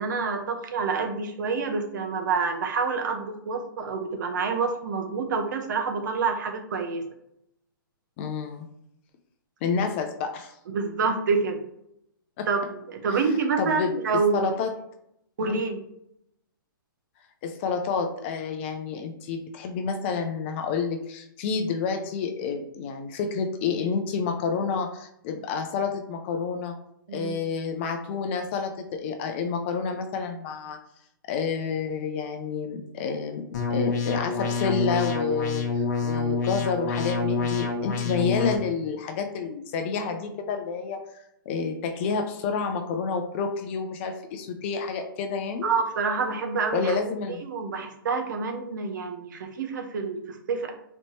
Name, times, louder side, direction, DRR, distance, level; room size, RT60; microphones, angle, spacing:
voice 1, 0.0-7.0 10.7-11.6 12.5-14.5 15.4-15.8 27.1-27.4 45.6-47.0 47.4-50.7, right 4 dB, 55° right, 4 dB, 0.9 m, -27 dB
voice 2, 8.2-8.7 9.6-10.5 12.4-12.5 13.1-13.2 13.6-13.9 14.3-14.7 15.4-15.6 17.4-26.8 27.1-30.8 31.3-41.0 41.5-45.7 46.7-47.4, left 5 dB, 30° left, 6 dB, 0.5 m, -29 dB
sound 1, 33.5-38.5, left 4 dB, 50° left, 1.1 m, -27 dB
4.1 x 3.2 x 3.0 m, 0.76 s
hypercardioid pair, 150°, 12 cm